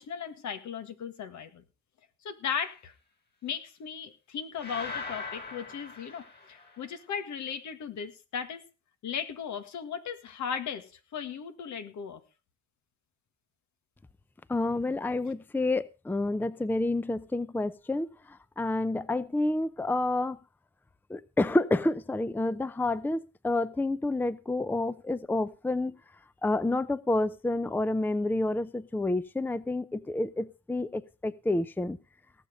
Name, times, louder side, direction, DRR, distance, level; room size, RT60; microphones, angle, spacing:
voice 1, 0.0-1.6 2.2-2.9 3.4-8.6 9.0-12.2, left 7 dB, 70° left, 10 dB, 1.9 m, -37 dB
sound 1, 4.6-6.8, left 4 dB, 35° left, 6.9 m, -40 dB
voice 2, 14.5-20.4 21.1-26.0 26.4-32.0, left 2 dB, 5° left, 17 dB, 0.6 m, -29 dB
18.0 x 7.0 x 5.2 m, 0.32 s
cardioid pair, 90°, 30 cm